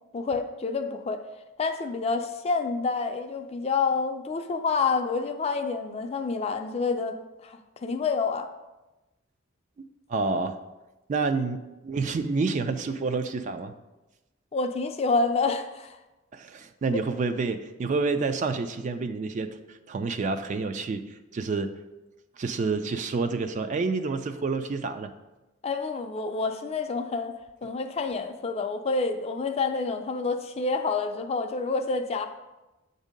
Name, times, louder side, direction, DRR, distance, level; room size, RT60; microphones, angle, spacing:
voice 1, 0.1-1.2 1.6-7.2 7.4-8.5 14.5-16.0 25.6-32.3, left 4 dB, 30° left, 7 dB, 0.4 m, -28 dB
voice 2, 10.1-10.6 11.1-13.7 16.3-19.5 19.9-21.0 21.3-21.7 22.4-25.1, right 4 dB, 40° right, 9 dB, 0.3 m, -28 dB
7.2 x 2.7 x 5.1 m, 1.0 s
head